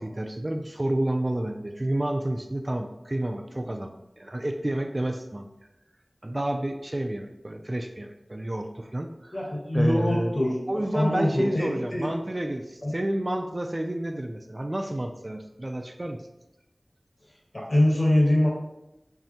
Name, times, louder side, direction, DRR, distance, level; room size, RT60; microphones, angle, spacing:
voice 1, 0.0-5.5 6.2-9.5 9.7-10.3 10.7-16.2, right 1 dB, 35° right, 6 dB, 0.3 m, -30 dB
voice 2, 9.3-10.5 10.9-12.1 12.8-12.9 17.5-18.5, left 1 dB, 45° left, -5 dB, 1.5 m, -23 dB
5.7 x 2.1 x 2.8 m, 0.91 s
wide cardioid pair, 50°, 0 cm